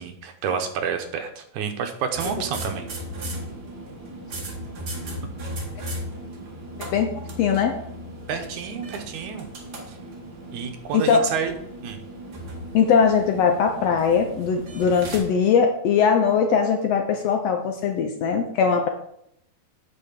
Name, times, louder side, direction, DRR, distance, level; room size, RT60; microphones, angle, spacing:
voice 1, 0.0-2.9 8.3-9.5 9.9-10.0 10.5-11.5 11.8-12.0, right 7 dB, 75° right, 6 dB, 2.3 m, -29 dB
sound 1, 2.1-15.2, right 1 dB, 40° right, 1.7 m, -36 dB
voice 2, 6.8-7.1 7.4-7.8 10.9-11.3 12.7-18.9, left 6 dB, 70° left, 5 dB, 1.6 m, -20 dB
8.9 x 4.7 x 7.2 m, 0.74 s
omnidirectional pair, 3.6 m